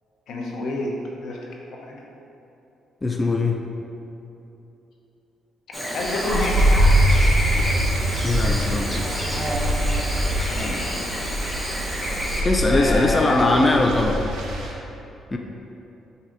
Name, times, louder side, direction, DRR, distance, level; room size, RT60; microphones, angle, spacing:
voice 1, 0.3-1.4 1.7-2.0 5.9-6.8 10.4-11.0 12.7-13.6, left 2 dB, 75° left, -1 dB, 0.7 m, -28 dB
voice 2, 3.0-3.6 8.2-9.2 12.4-14.2 15.3-15.4, left 2 dB, 20° left, 2 dB, 0.3 m, -21 dB
Chirp tweet / Buzz, 5.7-12.4, equal, 5° left, 0.7 m, -28 dB
sound 1, 6.0-14.7, equal, 85° right, 0.6 m, -23 dB
7.5 x 2.7 x 2.5 m, 2.9 s
cardioid pair, 90°, 0 cm